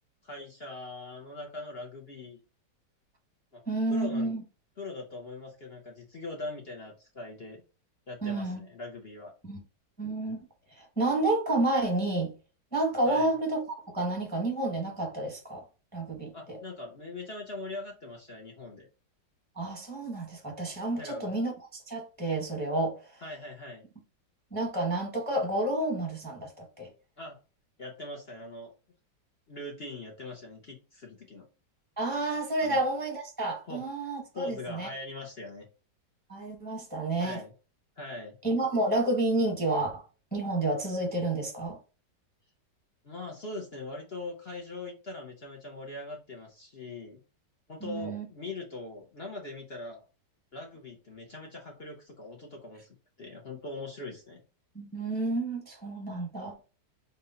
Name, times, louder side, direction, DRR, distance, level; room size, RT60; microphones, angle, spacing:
voice 1, 0.2-2.4 3.5-3.6 3.9-4.4 4.8-7.6 8.1-9.3 13.0-13.3 16.3-18.9 21.0-21.4 23.2-23.8 27.2-27.4 27.8-28.7 29.5-31.5 32.6-32.8 33.7-33.8 34.3-35.7 37.2-37.5 38.0-38.4 43.0-47.2 47.7-50.1 50.5-52.9 53.2-54.4, left 2 dB, 45° left, 0.9 m, -41 dB
voice 2, 3.7-4.4 8.2-8.6 9.4-9.6 10.0-10.4 10.8-12.3 12.7-15.6 15.9-16.6 19.6-23.0 24.5-26.9 32.0-34.9 36.3-37.4 38.4-40.0 40.3-41.8 47.8-48.3 54.7-56.6, right 2 dB, 5° left, 1.0 m, -30 dB
4.1 x 2.7 x 3.8 m
omnidirectional pair, 2.0 m